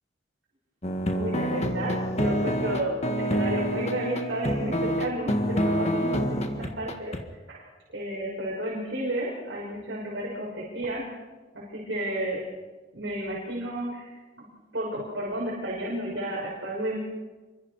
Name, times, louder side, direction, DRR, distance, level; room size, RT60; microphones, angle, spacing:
sound 1, 0.8-7.2, equal, 35° left, 1.8 m, -27 dB
voice 1, 1.1-7.2 7.5-7.7 7.9-11.0 11.5-12.4 12.9-14.4 14.7-17.1, right 1 dB, 70° right, -5 dB, 5.9 m, -32 dB
28.0 x 24.0 x 4.9 m, 1.3 s
head